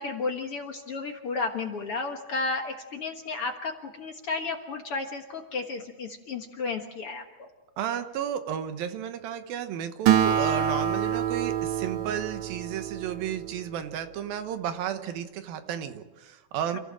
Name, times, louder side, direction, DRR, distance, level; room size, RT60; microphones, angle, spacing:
voice 1, 0.0-7.5 16.7-16.8, left 4 dB, 55° left, 4 dB, 1.8 m, -33 dB
voice 2, 7.8-16.8, right 9 dB, 90° right, 9 dB, 3.0 m, -33 dB
Acoustic guitar, 10.1-13.8, right 9 dB, 65° right, 2.3 m, -26 dB
28.5 x 15.0 x 7.5 m, 1.1 s
omnidirectional pair, 4.0 m